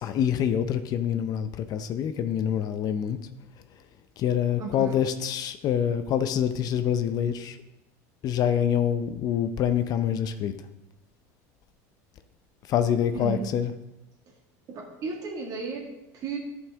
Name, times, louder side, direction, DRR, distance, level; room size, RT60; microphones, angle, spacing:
voice 1, 0.0-3.2 4.2-7.6 8.2-10.5 12.7-13.7, left 9 dB, 50° left, 10 dB, 0.6 m, -26 dB
voice 2, 4.6-5.0 13.1-13.5 14.7-16.4, right 5 dB, 45° right, 1 dB, 1.8 m, -34 dB
11.0 x 5.5 x 3.5 m, 0.94 s
supercardioid pair, 100°, 9 cm